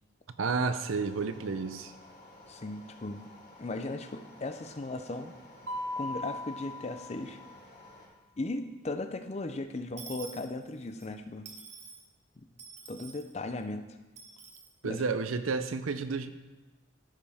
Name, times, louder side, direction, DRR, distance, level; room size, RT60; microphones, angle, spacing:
voice 1, 0.4-1.9 14.8-16.3, right 4 dB, 85° right, 10 dB, 0.6 m, -31 dB
sound 1, 0.8-8.1, left 1 dB, 50° left, 3.3 m, -54 dB
voice 2, 2.5-3.3 3.6-5.4 6.0-7.4 8.4-11.5 12.4-12.5 12.9-13.9 14.8-15.0, left 2 dB, 35° left, 8 dB, 0.5 m, -37 dB
Mallet percussion, 5.7-7.7, left 2 dB, 70° right, 0.9 m, -39 dB
Dishes pots and pans / Coin (dropping), 10.0-11.1 11.5-12.0 12.6-13.3 14.2-14.7, right 5 dB, 35° right, 0.9 m, -47 dB
13.5 x 5.4 x 3.5 m, 1.1 s
head